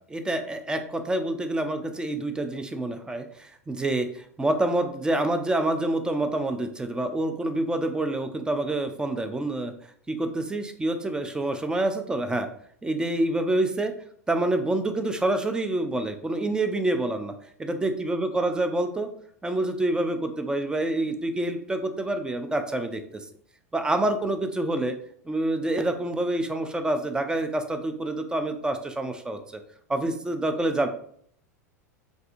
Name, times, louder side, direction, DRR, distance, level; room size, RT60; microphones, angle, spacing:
voice 1, 0.0-9.7 10.1-12.5 12.8-13.9 14.3-17.3 17.6-19.1 19.4-23.0 23.7-24.9 25.3-29.4 29.9-30.9, right 2 dB, 10° right, 7 dB, 0.4 m, -27 dB
3.4 x 2.5 x 2.5 m, 0.62 s
hypercardioid pair, 90°, 9 cm